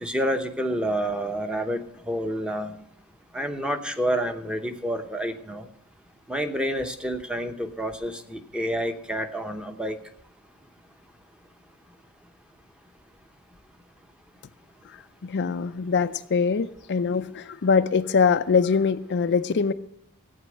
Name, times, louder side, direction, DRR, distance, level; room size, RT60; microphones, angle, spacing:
voice 1, 0.0-2.7 3.3-5.7 6.3-10.0, equal, 5° right, 7 dB, 1.0 m, -28 dB
voice 2, 14.8-19.7, left 5 dB, 55° left, 10 dB, 0.5 m, -23 dB
15.0 x 8.8 x 6.4 m, 0.68 s
head